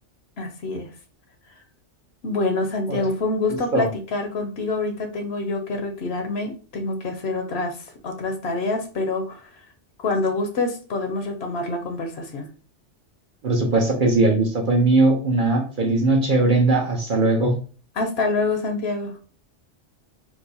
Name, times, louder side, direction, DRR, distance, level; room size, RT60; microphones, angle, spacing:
voice 1, 0.4-0.9 2.2-9.5 10.0-12.5 18.0-19.1, left 3 dB, 65° left, 5 dB, 0.9 m, -26 dB
voice 2, 13.4-17.5, right 2 dB, 50° right, 0 dB, 0.8 m, -19 dB
4.6 x 2.1 x 2.7 m, 0.38 s
omnidirectional pair, 1.2 m